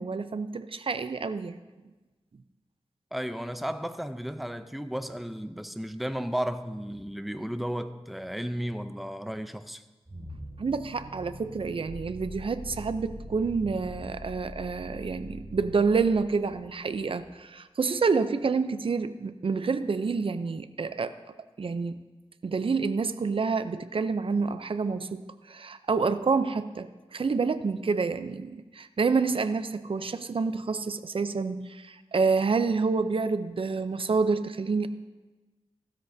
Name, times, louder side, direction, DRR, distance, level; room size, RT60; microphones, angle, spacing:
voice 1, 0.0-1.6 10.6-21.2 21.6-22.0 22.4-34.9, right 4 dB, 55° right, 0.5 m, -28 dB
voice 2, 3.1-9.8, equal, ahead, 0.5 m, -34 dB
sound 1, 10.1-17.2, equal, 20° right, 4.7 m, -43 dB
15.5 x 13.0 x 2.7 m
wide cardioid pair, 90°, 11 cm